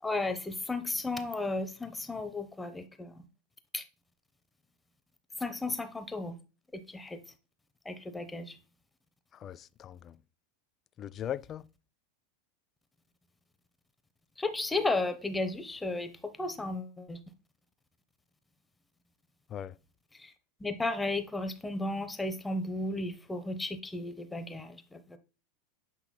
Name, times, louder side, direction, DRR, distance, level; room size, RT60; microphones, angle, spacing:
voice 1, 0.0-3.1 3.7-3.8 5.4-6.3 6.7-7.2 7.9-8.6 14.4-17.2 20.2-20.3 20.6-25.0, left 2 dB, 10° left, 0.7 m, -34 dB
voice 2, 9.3-10.1 11.0-11.6 19.5-19.7, left 10 dB, 35° left, 0.3 m, -39 dB
8.0 x 5.4 x 2.2 m
hypercardioid pair, 90°, 0 cm